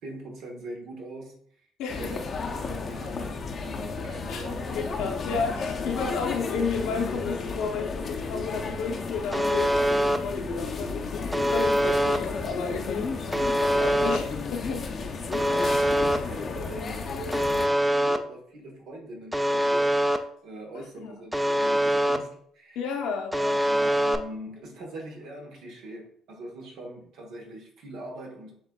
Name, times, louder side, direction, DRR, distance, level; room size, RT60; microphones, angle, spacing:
voice 1, 0.0-1.4 1.9-4.8 15.4-22.8 23.3-28.6, right 1 dB, 70° right, 1 dB, 1.1 m, -42 dB
voice 2, 1.8-2.1 4.3-13.1 13.6-14.8 20.7-21.1 22.7-23.3, left 5 dB, 80° left, 1 dB, 0.8 m, -32 dB
sound 1, 1.9-17.7, left 4 dB, 45° left, 0.6 m, -33 dB
Alarm, 9.3-10.2 11.3-12.2 13.3-14.2 15.3-16.2 17.3-18.2 19.3-20.2 21.3-22.2 23.3-24.2, equal, 10° right, 0.4 m, -23 dB
7.3 x 2.5 x 2.3 m, 0.63 s
supercardioid pair, 70°, 0 cm